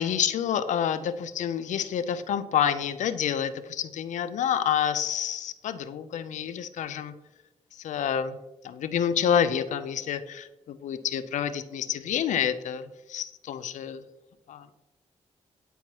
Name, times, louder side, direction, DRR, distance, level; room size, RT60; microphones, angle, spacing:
voice 1, 0.0-7.1 7.8-8.4 8.6-14.0 14.5-14.7, left 9 dB, 85° left, 12 dB, 0.4 m, -28 dB
9.0 x 4.5 x 2.9 m, 1.0 s
cardioid pair, 85°, 12 cm